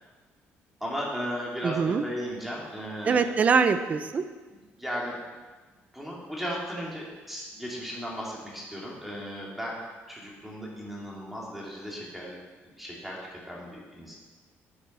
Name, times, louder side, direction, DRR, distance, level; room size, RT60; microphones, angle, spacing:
voice 1, 0.8-3.2 4.8-5.1 5.9-9.7 10.1-12.4 12.8-14.1, equal, 5° right, -4 dB, 2.6 m, -36 dB
voice 2, 1.6-2.0 3.1-4.2, right 5 dB, 30° right, 9 dB, 0.7 m, -23 dB
9.7 x 9.3 x 6.5 m, 1.3 s
cardioid pair, 165°, 5 cm